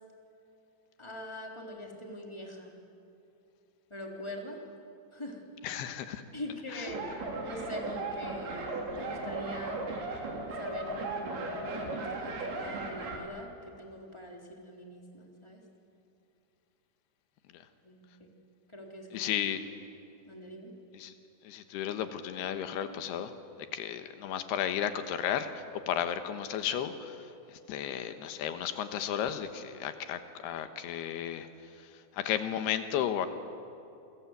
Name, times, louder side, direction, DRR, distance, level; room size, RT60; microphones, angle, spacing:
voice 1, 1.0-2.7 3.9-4.6 5.1-5.4 6.3-7.1 7.4-9.9 10.5-15.6 17.8-18.3 18.7-19.2 20.3-20.7, left 1 dB, 5° left, 0 dB, 2.9 m, -43 dB
voice 2, 5.6-6.2 6.7-6.9 17.5-17.6 19.1-19.6 20.9-21.1 21.4-33.3, left 9 dB, 75° left, 9 dB, 3.2 m, -34 dB
sound 1, 6.9-13.2, right 2 dB, 65° right, 5.2 m, -36 dB
28.5 x 23.0 x 8.1 m, 2.8 s
omnidirectional pair, 4.9 m